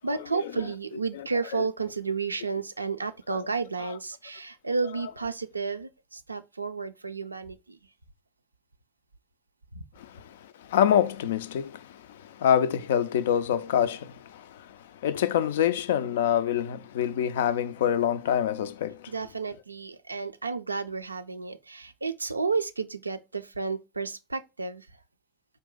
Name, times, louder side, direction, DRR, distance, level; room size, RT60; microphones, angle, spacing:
voice 1, 0.0-7.8 9.7-9.8 19.1-24.9, right 4 dB, 90° right, 0.3 m, -32 dB
voice 2, 10.0-19.1, left 9 dB, 70° left, 0.3 m, -26 dB
4.5 x 2.6 x 3.5 m
figure-of-eight pair, 75°, 0 cm